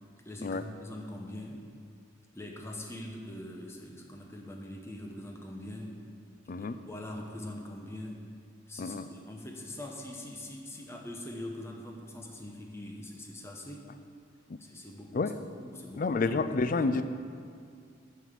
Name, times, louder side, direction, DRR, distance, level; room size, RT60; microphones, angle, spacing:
voice 1, 0.2-1.6 2.3-5.9 6.6-8.2 8.7-13.9 14.6-17.0, left 1 dB, 15° left, 1 dB, 0.9 m, -43 dB
voice 2, 16.0-17.0, left 3 dB, 45° left, 11 dB, 0.4 m, -29 dB
9.0 x 5.6 x 6.4 m, 2.3 s
head